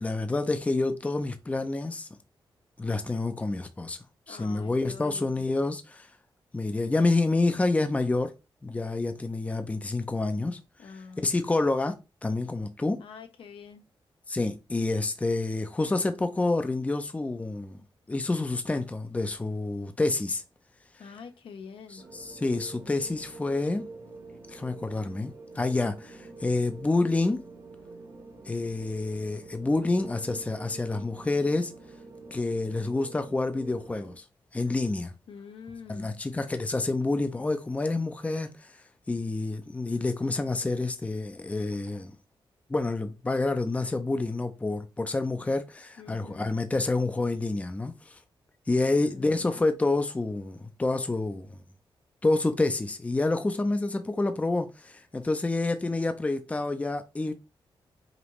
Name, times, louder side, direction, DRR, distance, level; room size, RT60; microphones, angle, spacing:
voice 1, 0.0-2.1 2.8-4.0 4.3-6.1 6.5-8.3 8.6-10.6 11.2-11.9 12.2-13.0 14.3-17.8 18.1-20.4 22.1-23.9 24.5-27.4 28.5-31.7 32.3-34.2 34.5-35.1 35.9-38.7 39.1-42.1 42.7-48.2 48.7-51.5 52.2-57.3, left 2 dB, 15° left, 0.5 m, -28 dB
voice 2, 4.3-5.5 10.8-11.6 13.0-13.8 21.0-22.0 35.3-36.2 46.0-46.6 48.9-49.6, left 5 dB, 80° left, 0.8 m, -46 dB
sound 1, 22.0-34.1, right 3 dB, 45° right, 1.2 m, -47 dB
5.0 x 2.6 x 3.1 m
wide cardioid pair, 120°, 9 cm